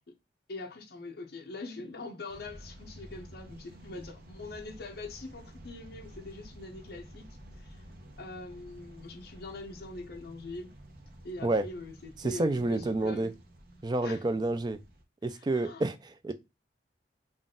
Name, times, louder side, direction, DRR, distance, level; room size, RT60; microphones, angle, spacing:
voice 1, 0.5-7.3 7.5-7.8 8.2-10.7 11.2-13.3 14.0-14.3 15.3-15.8, left 2 dB, 60° left, 0.7 m, -43 dB
sound 1, 2.3-15.0, right 1 dB, 55° right, 0.9 m, -51 dB
voice 2, 12.2-13.3 13.8-14.8 15.2-16.3, right 2 dB, 25° right, 0.3 m, -29 dB
3.9 x 2.4 x 3.6 m
head